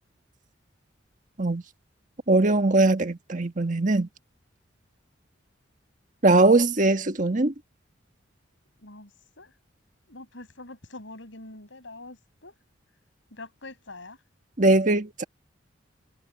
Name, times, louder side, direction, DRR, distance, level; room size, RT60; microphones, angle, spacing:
voice 1, 2.3-4.1 6.2-7.5 14.6-15.2, right 2 dB, 40° right, 1.5 m, -21 dB
voice 2, 8.8-9.5 10.1-12.6 13.3-14.2, left 2 dB, 75° left, 6.4 m, -44 dB
head